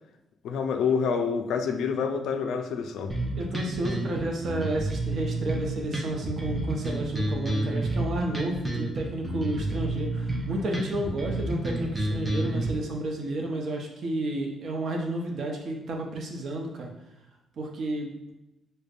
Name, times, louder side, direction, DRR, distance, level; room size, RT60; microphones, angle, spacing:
voice 1, 0.4-3.2, left 6 dB, 75° left, 6 dB, 0.3 m, -27 dB
sound 1, 3.1-12.7, right 2 dB, 15° right, 0.6 m, -30 dB
voice 2, 3.3-16.9 17.6-18.2, right 1 dB, 60° right, 1 dB, 0.7 m, -31 dB
5.0 x 2.1 x 2.4 m, 0.95 s
cardioid pair, 90°, 0 cm